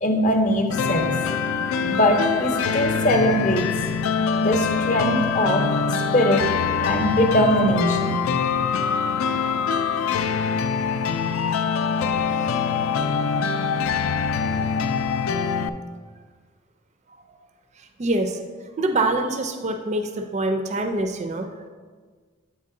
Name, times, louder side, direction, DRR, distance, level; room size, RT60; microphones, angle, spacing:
voice 1, 0.0-1.1 1.8-3.7 4.4-5.7 6.1-6.5 6.8-8.2, equal, 35° left, 4 dB, 0.7 m, -21 dB
sound 1, 0.7-15.7, left 6 dB, 75° left, 0.3 m, -24 dB
voice 2, 18.0-18.4 18.8-21.7, right 2 dB, 35° right, 6 dB, 0.4 m, -25 dB
8.3 x 4.0 x 3.7 m, 1.5 s
head